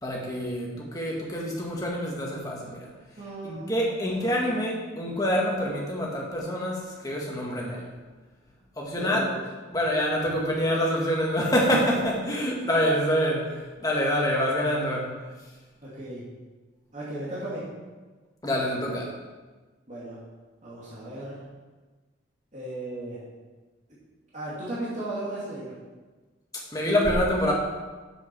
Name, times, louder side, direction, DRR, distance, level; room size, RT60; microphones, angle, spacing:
voice 1, 0.0-2.9 3.4-7.8 8.8-9.3 9.7-15.1 18.4-19.1 26.7-27.5, equal, 20° left, -3 dB, 1.7 m, -26 dB
voice 2, 3.2-4.6 9.0-9.4 11.7-12.0 15.8-16.2 16.9-17.7 19.9-20.2 20.6-21.4 22.5-23.2 24.3-25.7, right 1 dB, 35° right, -9 dB, 2.3 m, -36 dB
7.5 x 7.2 x 6.0 m, 1.3 s
head